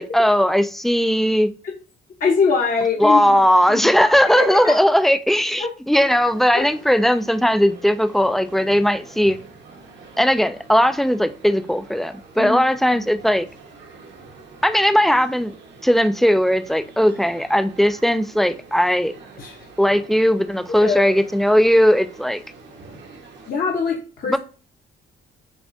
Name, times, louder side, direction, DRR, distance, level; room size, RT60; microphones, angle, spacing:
voice 1, 0.0-1.5 3.0-9.4 10.2-13.5 14.6-15.5 15.8-19.1 19.8-22.4 24.3-24.4, equal, ahead, 0.3 m, -18 dB
voice 2, 2.2-3.4 3.7-4.1 4.4-4.7 12.4-12.6 19.4-19.6 20.8-21.2 23.5-24.4, left 5 dB, 45° left, 0.9 m, -22 dB
sound 1, 6.1-23.5, right 3 dB, 65° right, 1.1 m, -45 dB
6.9 x 2.4 x 2.6 m
cardioid pair, 90°, 20 cm